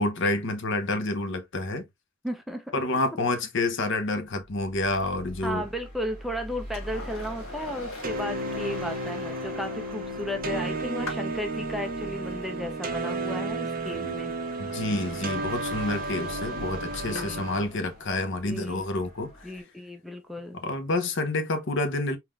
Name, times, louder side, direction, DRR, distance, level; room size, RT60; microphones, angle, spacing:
voice 1, 0.0-1.9 2.7-5.6 13.9-14.2 14.6-19.5 20.6-22.2, left 2 dB, 55° left, 0.7 m, -28 dB
voice 2, 2.2-2.7 5.4-14.3 17.1-17.5 18.5-18.8 19.4-20.6, equal, ahead, 0.6 m, -34 dB
sound 1, 4.4-19.6, equal, 25° left, 2.5 m, -44 dB
Skateboard, 6.7-17.6 20.2-20.3, left 2 dB, 80° left, 1.3 m, -46 dB
sound 2, 8.0-17.6, right 2 dB, 40° right, 0.9 m, -33 dB
4.3 x 3.6 x 2.4 m
head